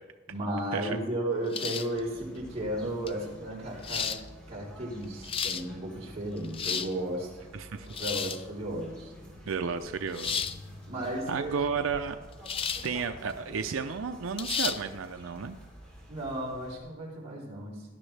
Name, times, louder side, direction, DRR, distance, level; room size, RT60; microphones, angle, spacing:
voice 1, 0.3-4.2 4.5-7.4 7.8-9.1 10.9-11.6 16.1-17.9, right 1 dB, 30° right, -5 dB, 3.7 m, -34 dB
sound 1, 1.5-2.0 3.1-3.2 3.8-4.2 5.0-5.6 6.4-6.9 7.9-8.4 10.1-10.6 12.5-12.9 13.3-13.4 14.4-14.8, left 7 dB, 25° left, 0.4 m, -32 dB
sound 2, 1.9-16.8, equal, 5° left, 3.1 m, -50 dB
voice 2, 7.5-7.9 9.5-10.4 11.3-12.2 12.8-15.6, right 5 dB, 80° right, 8 dB, 0.5 m, -32 dB
17.0 x 11.0 x 3.3 m, 1.2 s
head